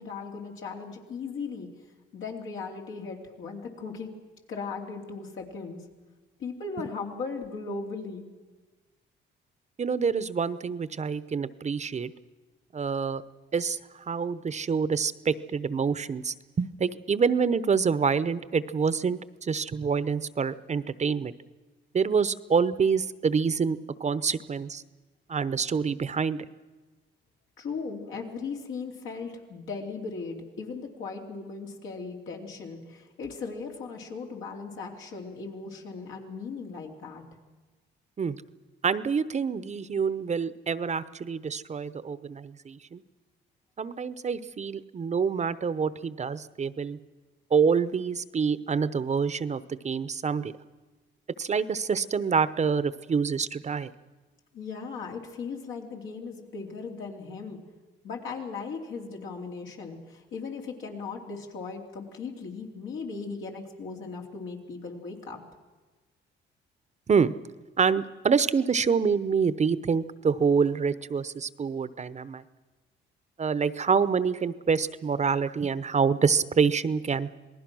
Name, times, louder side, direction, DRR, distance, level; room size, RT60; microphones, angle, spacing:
voice 1, 0.0-1.7 2.1-4.1 4.5-5.8 6.4-8.3 27.6-37.2 54.5-57.6 58.0-65.4, left 4 dB, 80° left, 0 dB, 3.4 m, -37 dB
voice 2, 9.8-12.1 12.7-13.2 13.5-21.3 21.9-24.8 25.3-26.4 38.2-38.4 38.8-43.0 43.8-47.0 47.5-50.5 51.4-53.9 67.1-67.3 67.8-72.4 73.4-77.3, right 6 dB, 35° right, 15 dB, 0.8 m, -26 dB
27.0 x 19.0 x 6.2 m, 1.3 s
cardioid pair, 90°, 20 cm